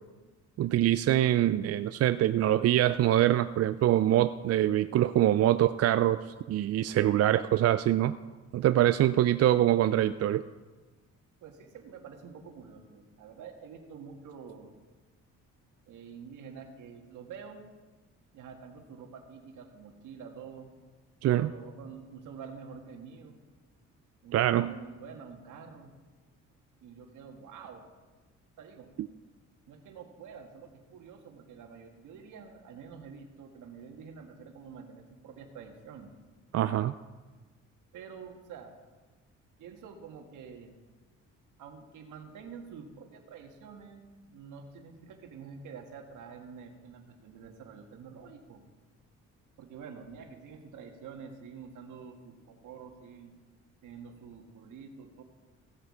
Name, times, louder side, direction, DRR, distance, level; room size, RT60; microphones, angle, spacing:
voice 1, 0.6-6.2 6.5-8.1 8.5-10.4 21.2-21.5 24.3-24.7 36.5-36.9, right 12 dB, 55° right, 12 dB, 0.4 m, -24 dB
voice 2, 11.4-14.8 15.9-17.6 18.3-20.7 21.3-23.4 24.2-26.0 26.8-27.9 28.6-28.9 29.7-36.1 37.9-38.7 39.6-40.8 41.6-48.6 49.6-53.3 53.8-55.2, right 6 dB, 80° right, 4 dB, 1.7 m, -47 dB
15.5 x 8.1 x 4.9 m, 1.3 s
cardioid pair, 90°, 30 cm